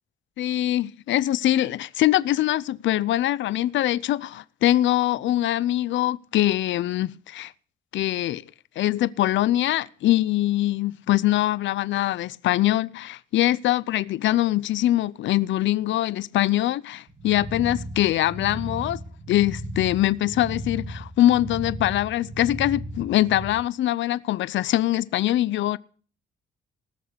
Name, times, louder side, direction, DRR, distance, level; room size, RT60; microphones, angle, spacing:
voice 1, 0.4-7.5 7.9-8.4 8.8-19.0 19.3-25.8, left 14 dB, 70° left, 0.6 m, -23 dB
sound 1, 17.1-23.5, right 1 dB, 40° right, 2.6 m, -35 dB
19.0 x 6.4 x 6.8 m
cardioid pair, 90°, 20 cm